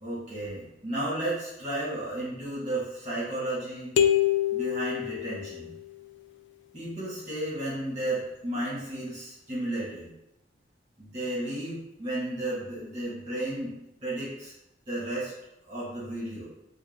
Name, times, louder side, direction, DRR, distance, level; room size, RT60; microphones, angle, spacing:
voice 1, 0.0-3.9 4.5-5.7 6.7-10.1 11.0-13.7 14.0-14.5 14.9-15.3 15.7-16.5, right 1 dB, 20° right, -7 dB, 1.3 m, -33 dB
sound 1, 4.0-5.8, left 10 dB, 90° left, 0.3 m, -26 dB
4.4 x 2.2 x 3.4 m, 0.86 s
head